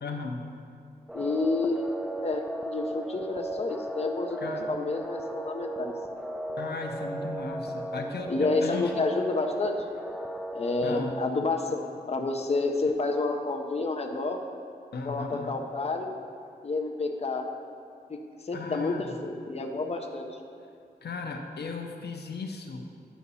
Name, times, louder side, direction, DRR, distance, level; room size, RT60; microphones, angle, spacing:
voice 1, 0.0-0.5 4.4-4.7 6.6-9.0 10.8-11.2 14.9-15.6 18.5-19.1 21.0-22.9, left 4 dB, 85° left, 4 dB, 0.7 m, -36 dB
voice 2, 1.1-1.9 2.2-5.9 8.3-9.8 10.5-14.4 15.0-16.1 16.6-17.4 18.1-18.2 18.4-20.3, left 3 dB, 40° left, 3 dB, 0.7 m, -29 dB
sound 1, 1.1-11.2, right 1 dB, ahead, 0.4 m, -36 dB
10.0 x 5.7 x 4.1 m, 2.4 s
wide cardioid pair, 110°, 17 cm